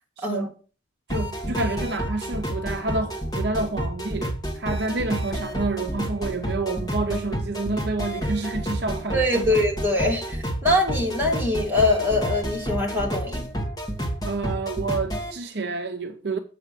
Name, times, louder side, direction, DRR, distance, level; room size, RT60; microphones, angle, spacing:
voice 1, 0.2-0.5 1.1-9.5 14.2-16.4, right 3 dB, 60° right, 0.7 m, -29 dB
sound 1, 1.1-15.3, equal, 20° left, 1.7 m, -29 dB
voice 2, 9.1-13.5, left 1 dB, 10° right, 2.6 m, -23 dB
7.7 x 5.7 x 6.7 m
head